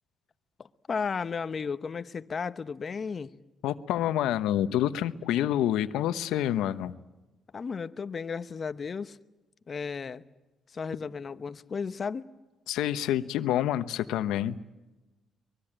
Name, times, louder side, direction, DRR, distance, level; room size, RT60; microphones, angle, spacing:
voice 1, 0.6-3.3 7.5-9.2 9.7-10.2 10.7-12.3, left 5 dB, 40° left, 1.0 m, -34 dB
voice 2, 3.6-7.0 12.7-14.6, left 12 dB, 90° left, 1.0 m, -27 dB
24.0 x 21.5 x 9.0 m
cardioid pair, 90°, 0 cm